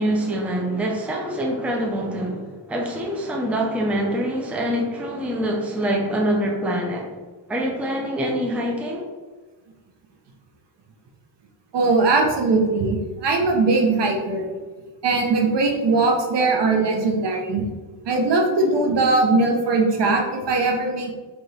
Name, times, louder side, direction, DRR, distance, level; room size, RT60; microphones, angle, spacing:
voice 1, 0.0-7.1 7.5-9.1, right 1 dB, 5° right, 0 dB, 0.5 m, -25 dB
voice 2, 11.7-14.5 15.0-17.7 18.0-21.1, right 3 dB, 60° right, 2 dB, 0.9 m, -20 dB
4.1 x 3.4 x 3.3 m, 1.3 s
cardioid pair, 110°, 48 cm